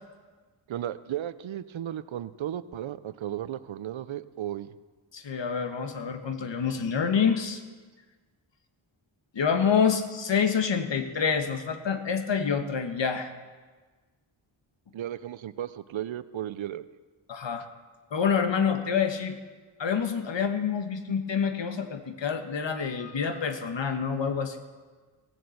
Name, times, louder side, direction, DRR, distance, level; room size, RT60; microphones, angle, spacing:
voice 1, 0.7-4.7 14.9-16.8, right 11 dB, 75° right, 15 dB, 0.6 m, -35 dB
voice 2, 5.1-7.6 9.3-13.3 17.3-17.7 18.1-19.4 19.8-24.6, left 6 dB, 65° left, 7 dB, 1.3 m, -27 dB
17.0 x 6.9 x 7.8 m, 1.4 s
cardioid pair, 65°, 47 cm